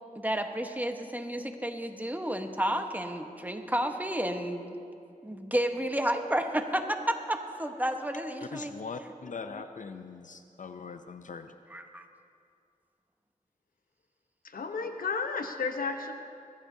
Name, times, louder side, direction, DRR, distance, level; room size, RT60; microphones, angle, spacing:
voice 1, 0.1-4.8 5.2-8.7 11.7-12.1, right 1 dB, 10° right, 5 dB, 1.1 m, -31 dB
voice 2, 8.5-11.5, left 4 dB, 65° left, 8 dB, 0.6 m, -41 dB
voice 3, 14.5-16.1, left 4 dB, 85° left, 6 dB, 0.9 m, -32 dB
21.5 x 14.5 x 2.8 m, 2.4 s
cardioid pair, 50°, 14 cm